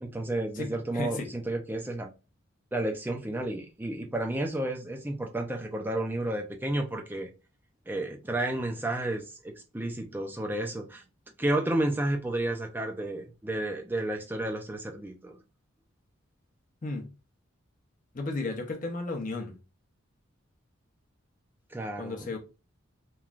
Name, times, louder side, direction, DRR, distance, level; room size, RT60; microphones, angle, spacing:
voice 1, 0.0-2.1 2.7-7.3 7.9-9.2 9.7-11.0 11.4-15.4 21.7-22.4, right 1 dB, 10° right, 0.4 m, -31 dB
voice 2, 0.5-1.3 16.8-17.1 18.1-19.6 22.0-22.4, left 3 dB, 40° left, 0.6 m, -34 dB
3.0 x 2.3 x 2.4 m
head